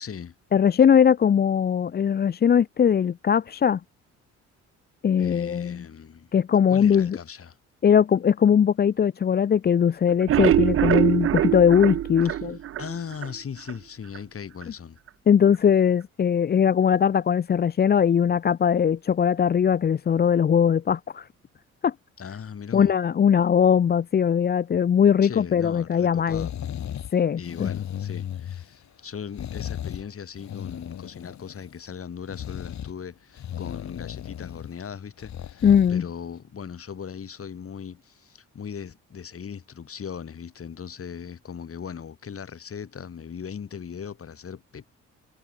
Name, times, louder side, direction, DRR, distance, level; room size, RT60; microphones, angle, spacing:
voice 1, 0.0-0.3 5.2-6.3 6.7-7.6 12.3-12.4 12.8-15.0 22.2-22.9 25.2-26.5 27.4-44.9, left 7 dB, 50° left, 7.0 m, -38 dB
voice 2, 0.5-3.8 5.0-5.8 6.3-7.2 7.8-12.6 15.3-21.3 21.8-21.9 22.7-26.5 27.1-27.7 35.6-36.0, left 8 dB, 35° left, 0.5 m, -20 dB
sound 1, 10.1-13.3 13.7-13.8 14.2-14.3 14.6-14.7, right 11 dB, 45° right, 0.5 m, -23 dB
sound 2, 26.3-27.1 27.4-28.8 29.3-30.1 30.3-31.7 32.3-32.9 33.4-34.7 35.2-35.9 36.4-36.5, left 10 dB, 65° left, 4.6 m, -35 dB
cardioid pair, 90°, 30 cm